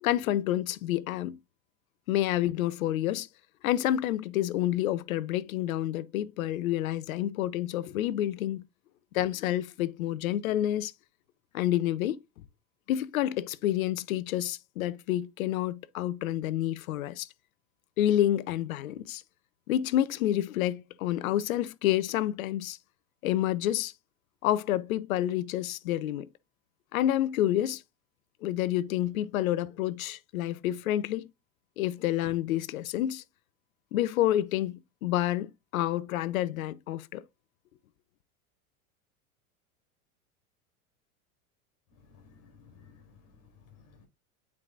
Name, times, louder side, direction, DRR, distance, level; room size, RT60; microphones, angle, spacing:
voice 1, 0.0-1.4 2.1-3.3 3.6-8.6 9.1-10.9 11.5-12.2 12.9-17.3 18.0-19.2 19.7-22.8 23.2-23.9 24.4-26.3 26.9-27.8 28.4-31.3 31.8-33.2 33.9-37.2, left 13 dB, 75° left, 0.8 m, -29 dB
voice 2, 41.9-44.1, left 5 dB, 45° left, 4.8 m, -57 dB
8.5 x 4.8 x 2.6 m
hypercardioid pair, 100°, 42 cm